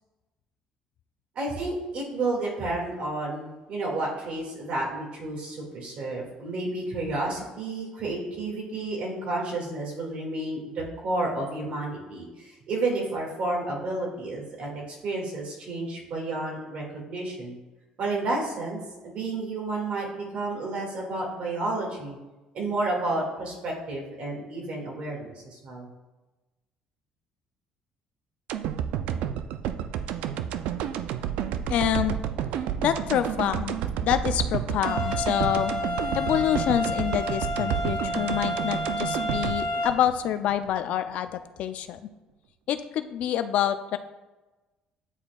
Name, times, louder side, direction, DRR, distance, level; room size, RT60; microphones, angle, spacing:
voice 1, 1.4-17.6 18.0-22.2 22.5-25.9, right 2 dB, 55° right, -2 dB, 1.9 m, -31 dB
sound 1, 28.5-40.7 41.1-41.2, right 9 dB, 80° right, 0.3 m, -30 dB
voice 2, 31.7-32.2 32.8-35.7 36.2-42.0 42.7-44.0, left 10 dB, 65° left, 10 dB, 0.4 m, -27 dB
sound 2, 34.8-39.9, left 1 dB, 85° left, 1.1 m, -30 dB
9.7 x 4.2 x 2.3 m, 1.1 s
cardioid pair, 125°, 2 cm